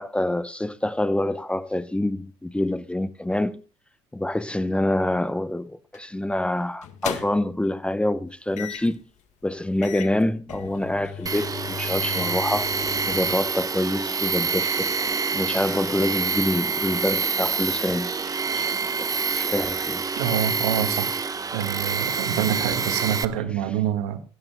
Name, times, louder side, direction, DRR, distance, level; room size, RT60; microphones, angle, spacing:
voice 1, 0.0-3.6 4.1-9.0 9.4-12.7 13.1-15.0 15.3-19.1 19.3-20.0, left 1 dB, 10° left, 0.8 m, -26 dB
sound 1, 5.9-6.2 6.8-7.6 8.6-9.0 9.5-9.6 9.8-13.4, left 8 dB, 60° left, 1.6 m, -35 dB
Tools, 11.3-23.3, right 5 dB, 25° right, 1.2 m, -27 dB
voice 2, 20.2-21.1 21.5-24.2, right 10 dB, 75° right, 1.7 m, -26 dB
21.0 x 16.5 x 2.2 m
hypercardioid pair, 60°, 14 cm